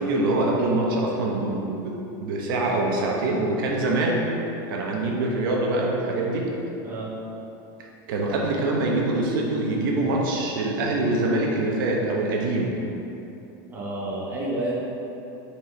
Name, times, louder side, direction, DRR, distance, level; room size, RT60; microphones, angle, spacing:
voice 1, 0.0-4.2 4.7-6.5 8.1-12.7, right 2 dB, 80° right, -1 dB, 0.9 m, -24 dB
voice 2, 13.7-14.7, right 1 dB, 15° right, -5 dB, 1.0 m, -30 dB
6.4 x 4.5 x 3.3 m, 2.9 s
supercardioid pair, 150°, 11 cm